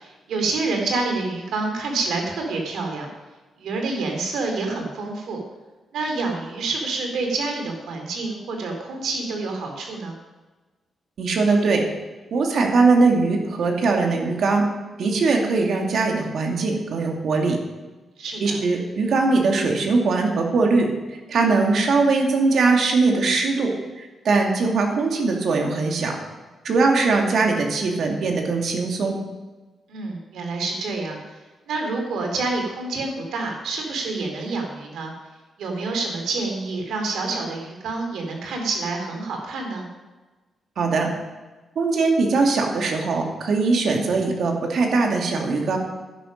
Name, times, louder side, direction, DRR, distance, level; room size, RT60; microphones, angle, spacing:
voice 1, 0.0-3.1 3.6-5.4 5.9-10.2 18.2-18.6 29.9-31.2 31.7-35.1 35.6-39.9, right 3 dB, 90° right, 3 dB, 2.9 m, -27 dB
voice 2, 11.2-11.8 12.3-14.6 15.0-17.6 18.4-20.9 21.3-26.2 26.6-29.2 40.8-41.1 41.8-45.8, right 3 dB, 60° right, 2 dB, 2.3 m, -21 dB
11.0 x 10.5 x 5.3 m, 1.2 s
wide cardioid pair, 135°, 0 cm